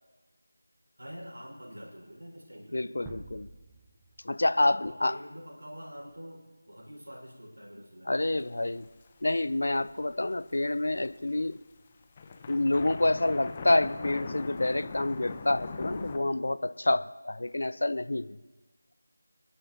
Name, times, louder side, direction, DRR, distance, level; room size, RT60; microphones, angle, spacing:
voice 1, 1.0-2.9 4.6-8.2, equal, 75° right, -2 dB, 5.3 m, -46 dB
voice 2, 2.7-3.5 4.2-5.2 8.0-8.9 9.2-11.6 12.5-18.4, left 2 dB, 60° left, 16 dB, 0.5 m, -28 dB
sound 1, 3.1-6.0, right 3 dB, 5° right, 0.6 m, -51 dB
sound 2, 8.3-9.4 9.8-11.3 11.7-11.8 12.0-16.2, left 4 dB, 20° left, 0.8 m, -40 dB
26.5 x 11.0 x 2.9 m, 1.2 s
figure-of-eight pair, 165°, 0 cm